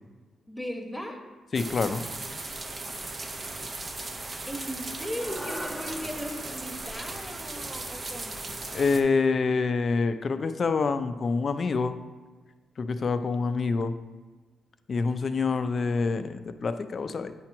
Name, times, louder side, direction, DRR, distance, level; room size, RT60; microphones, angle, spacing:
voice 1, 0.5-1.2 4.4-8.5, equal, 5° left, 2 dB, 1.2 m, -37 dB
voice 2, 1.5-2.1 8.7-12.0 12.8-13.9 14.9-17.3, left 4 dB, 50° left, 10 dB, 0.4 m, -26 dB
sound 1, 1.5-9.0, right 2 dB, 40° right, 0.8 m, -37 dB
sound 2, 5.2-9.7, equal, 15° right, 1.0 m, -43 dB
8.5 x 2.9 x 5.9 m, 1.3 s
cardioid pair, 70°, 0 cm